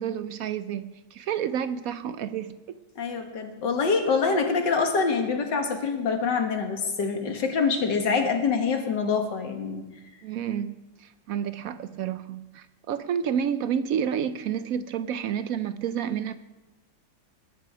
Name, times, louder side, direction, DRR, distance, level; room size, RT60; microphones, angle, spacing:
voice 1, 0.0-2.8 10.2-16.4, right 8 dB, 75° right, 12 dB, 0.8 m, -30 dB
voice 2, 3.0-9.8, left 5 dB, 70° left, 4 dB, 2.2 m, -25 dB
20.5 x 10.5 x 4.8 m, 1.1 s
omnidirectional pair, 2.0 m